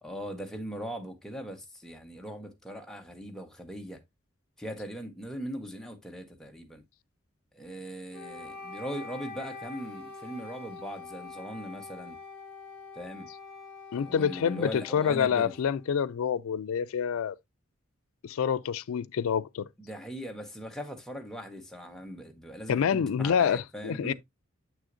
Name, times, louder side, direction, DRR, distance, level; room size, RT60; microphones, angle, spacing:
voice 1, 0.0-4.0 4.6-6.8 7.5-12.2 12.9-13.3 13.9-15.5 19.8-24.1, equal, ahead, 0.8 m, -40 dB
Wind instrument woodwind instrument, 8.1-16.2, left 4 dB, 25° left, 2.8 m, -45 dB
voice 2, 13.9-17.4 18.2-19.7 22.7-24.1, left 7 dB, 85° left, 0.4 m, -27 dB
7.0 x 6.3 x 2.5 m
head